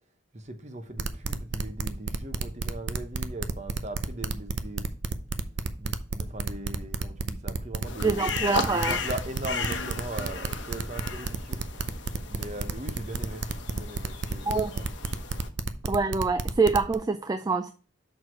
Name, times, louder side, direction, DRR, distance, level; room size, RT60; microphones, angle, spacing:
voice 1, 0.3-4.9 5.8-8.3 8.7-11.6 12.3-14.9, right 1 dB, 35° right, 0.9 m, -39 dB
sound 1, 1.0-17.0, right 4 dB, 60° right, 0.6 m, -31 dB
sound 2, 7.9-15.5, left 4 dB, 60° left, 0.9 m, -36 dB
voice 2, 8.0-9.0 14.5-14.7 15.9-17.7, right 4 dB, 20° right, 0.3 m, -25 dB
6.2 x 4.7 x 4.6 m
head